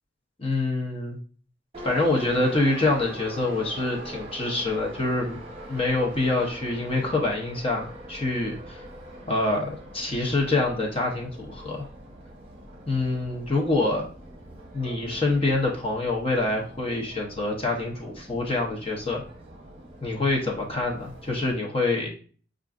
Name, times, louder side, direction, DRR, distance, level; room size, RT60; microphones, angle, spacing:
voice 1, 0.4-1.2 1.8-5.4 5.7-8.8 9.3-11.9 12.9-14.1 14.7-19.2 20.0-22.1, left 2 dB, 30° left, -1 dB, 0.8 m, -26 dB
Subway metro underground, 1.7-21.6, right 1 dB, 30° right, 0.9 m, -43 dB
6.1 x 2.5 x 2.4 m, 0.41 s
head